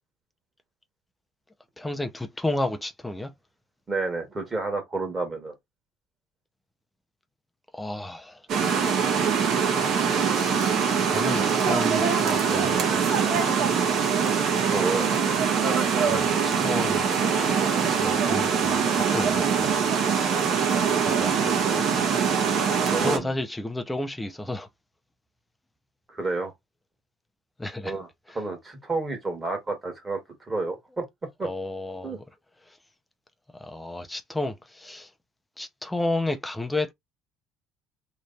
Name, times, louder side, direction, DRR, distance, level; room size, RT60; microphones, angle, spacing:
voice 1, 1.8-3.3 7.7-8.4 11.0-13.1 16.1-17.1 17.8-19.8 21.0-21.6 22.8-24.7 27.6-27.9 31.4-32.3 33.5-35.1 35.6-36.9, left 2 dB, 5° left, 0.5 m, -32 dB
voice 2, 3.9-5.5 14.6-15.1 17.2-17.7 22.9-23.3 26.1-26.5 27.8-28.1 28.3-30.2 30.5-31.1 31.4-31.5 32.0-32.2, right 3 dB, 20° right, 1.5 m, -30 dB
sound 1, 8.5-23.2, right 6 dB, 50° right, 1.2 m, -23 dB
3.2 x 3.0 x 3.9 m
cardioid pair, 155°, 0 cm